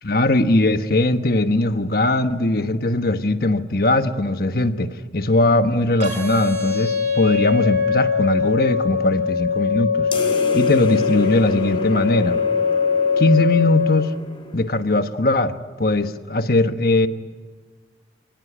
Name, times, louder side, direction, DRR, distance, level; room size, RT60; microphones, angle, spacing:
voice 1, 0.0-10.1 10.5-12.4 13.2-14.1 14.5-17.1, left 2 dB, 55° left, 9 dB, 1.3 m, -20 dB
sound 1, 6.0-14.0, left 6 dB, 45° right, 5.7 m, -22 dB
sound 2, 10.1-15.0, left 1 dB, 30° left, 3.1 m, -32 dB
30.0 x 18.5 x 10.0 m, 1.5 s
head